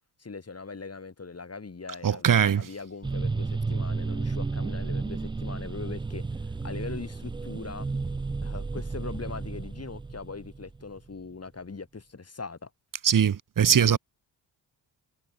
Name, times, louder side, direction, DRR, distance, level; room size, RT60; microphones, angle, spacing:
voice 1, 0.2-6.2 6.6-7.9 8.4-12.7 13.7-14.0, left 4 dB, 35° left, 4.3 m, -40 dB
voice 2, 2.0-2.7 13.0-14.0, right 8 dB, 45° right, 1.1 m, -21 dB
sound 1, 3.0-11.1, right 3 dB, 10° right, 0.3 m, -32 dB
cardioid pair, 75°, 45 cm